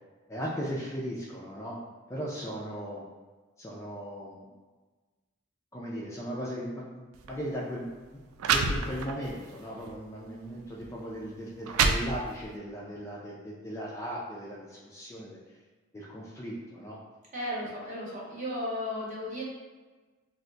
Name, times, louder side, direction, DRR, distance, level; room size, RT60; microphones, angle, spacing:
voice 1, 0.3-1.8 2.1-3.0 3.6-4.5 5.7-7.0 7.3-7.9 8.5-15.4 15.9-17.0, equal, 15° left, -5 dB, 0.3 m, -37 dB
sound 1, 7.1-7.3 8.0-8.1 8.4-9.3 9.9-10.0 10.8-10.9 11.4-12.6, right 5 dB, 85° right, 0.3 m, -27 dB
voice 2, 17.3-19.4, left 1 dB, 35° right, -5 dB, 0.9 m, -34 dB
2.6 x 2.2 x 3.8 m, 1.3 s
head